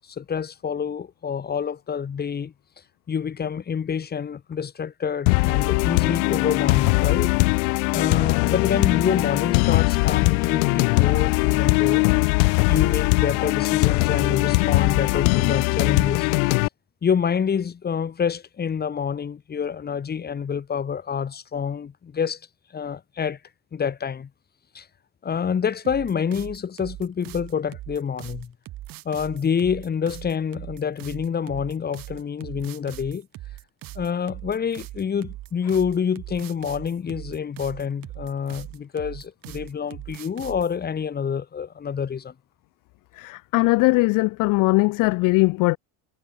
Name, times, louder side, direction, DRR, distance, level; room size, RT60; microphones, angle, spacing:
voice 1, 0.1-2.5 3.1-7.4 7.9-12.0 12.7-16.3 17.0-22.4 22.7-23.4 23.7-24.3 24.7-24.9 25.2-28.5 29.0-33.3 33.9-42.3, left 7 dB, 20° left, 1.5 m, -27 dB
sound 1, 5.3-16.7, left 35 dB, 80° left, 1.9 m, -20 dB
sound 2, 25.8-40.7, right 15 dB, 50° right, 5.4 m, -40 dB
voice 2, 43.2-45.8, left 24 dB, 50° left, 0.5 m, -20 dB
supercardioid pair, 125°, 43 cm